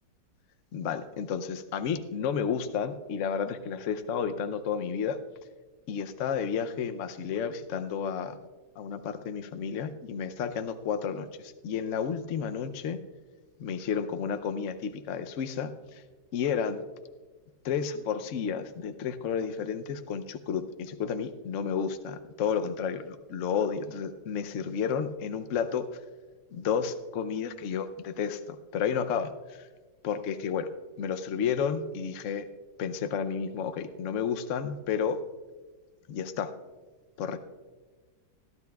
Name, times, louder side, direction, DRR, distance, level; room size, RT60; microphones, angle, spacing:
voice 1, 0.7-5.2 5.9-8.4 8.8-13.0 13.6-15.7 16.3-16.8 17.6-25.8 26.5-29.3 30.0-30.7 31.0-32.5 32.8-35.2 36.1-36.5 37.2-37.4, left 7 dB, 65° left, 8 dB, 0.8 m, -31 dB
20.5 x 12.5 x 2.3 m, 1.3 s
omnidirectional pair, 2.0 m